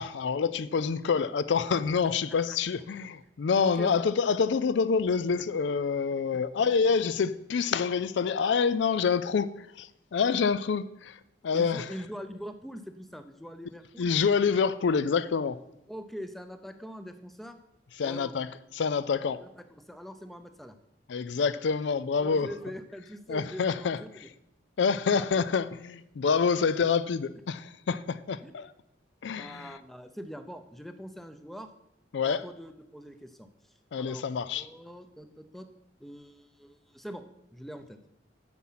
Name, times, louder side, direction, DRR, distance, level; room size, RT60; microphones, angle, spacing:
voice 1, 0.0-11.2 11.4-11.8 14.0-15.6 18.0-18.5 18.7-19.4 21.1-22.5 23.3-24.0 24.8-28.0 28.3-28.7 29.2-29.7 32.1-32.4 33.9-34.7, left 5 dB, 65° left, 0.4 m, -27 dB
voice 2, 3.6-4.0 11.5-14.1 15.9-17.6 18.0-18.4 19.3-20.8 22.2-24.3 25.1-25.4 28.4-28.7 29.3-31.7 32.2-33.5 34.0-35.7 36.0-37.2 37.5-38.0, equal, ahead, 0.6 m, -43 dB
9.7 x 7.5 x 5.7 m
head